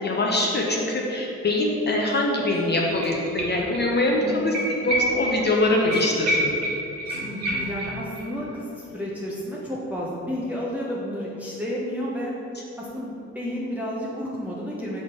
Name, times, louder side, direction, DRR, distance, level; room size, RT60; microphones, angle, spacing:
voice 1, 0.0-6.5, left 2 dB, 35° left, -1 dB, 0.8 m, -23 dB
sound 1, 2.1-2.2 2.4-3.8 4.1-4.2 4.5-8.2 8.5-8.6, right 1 dB, 60° right, 1.5 m, -28 dB
voice 2, 4.2-4.9 7.2-12.4 12.8-15.0, equal, 5° right, -6 dB, 0.8 m, -31 dB
5.7 x 4.2 x 4.7 m, 3.0 s
cardioid pair, 90°, 30 cm